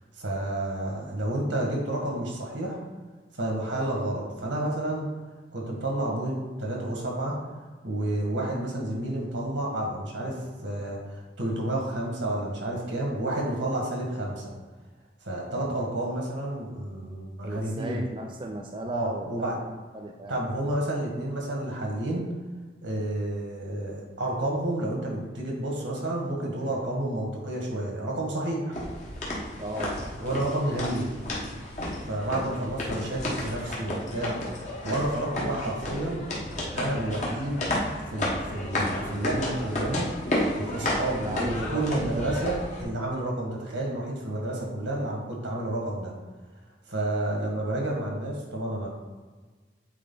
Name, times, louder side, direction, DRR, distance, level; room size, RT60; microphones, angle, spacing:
voice 1, 0.2-2.8 3.3-5.0 5.5-7.4 7.8-14.5 15.2-18.0 18.9-19.6 20.3-22.3 22.8-28.8 30.2-31.1 32.0-34.4 34.8-36.3 36.7-37.6 38.1-46.1 46.9-48.9, right 1 dB, 85° right, -1 dB, 1.8 m, -30 dB
voice 2, 17.4-20.4 29.6-30.2 41.1-42.2, right 1 dB, 25° right, 2 dB, 0.4 m, -36 dB
sound 1, 28.7-42.8, left 1 dB, 40° left, 1.3 m, -32 dB
8.4 x 3.3 x 3.9 m, 1.4 s
head